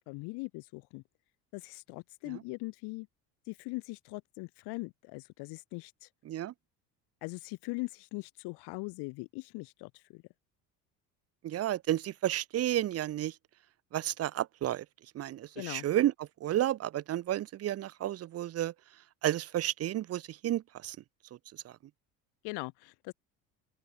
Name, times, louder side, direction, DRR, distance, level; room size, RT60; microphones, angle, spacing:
voice 1, 0.1-1.0 1.5-3.1 3.5-6.1 7.2-10.2 15.6-15.8 22.4-23.1, left 26 dB, 55° left, 1.0 m, -41 dB
voice 2, 11.4-13.3 13.9-14.8 15.2-16.1 16.4-18.7 19.2-21.0, right 13 dB, 30° right, 0.6 m, -31 dB
open air
figure-of-eight pair, 60°, 48 cm